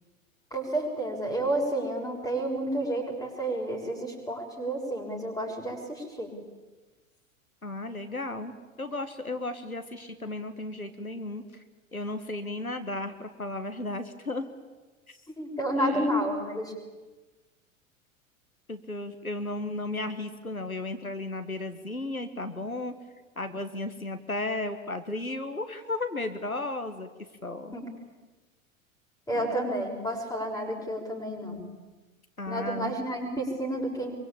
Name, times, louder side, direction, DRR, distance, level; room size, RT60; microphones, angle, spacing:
voice 1, 0.5-6.3 15.3-16.7 27.7-27.8 29.3-31.6 32.5-34.1, right 1 dB, 10° left, 3 dB, 6.9 m, -30 dB
voice 2, 7.6-11.6 11.9-14.5 15.1-15.2 15.6-16.1 18.7-22.9 23.4-27.1 27.4-27.7 29.3-29.6 32.4-33.0, left 2 dB, 90° left, 8 dB, 1.6 m, -34 dB
24.5 x 24.0 x 8.8 m, 1.2 s
figure-of-eight pair, 90°, 41 cm